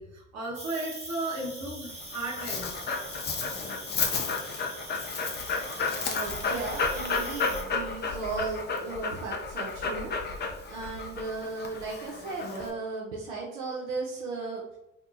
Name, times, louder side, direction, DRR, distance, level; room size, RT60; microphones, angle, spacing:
voice 1, 0.0-2.7, right 2 dB, 50° right, -1 dB, 1.0 m, -35 dB
Cricket, 0.5-7.6, right 2 dB, 20° right, 1.0 m, -43 dB
Dog, 1.9-12.7, left 4 dB, 30° left, 0.5 m, -32 dB
voice 2, 5.9-10.1 10.7-14.6, right 3 dB, 80° right, -3 dB, 0.5 m, -36 dB
2.7 x 2.2 x 2.5 m, 0.88 s
hypercardioid pair, 55°, 35 cm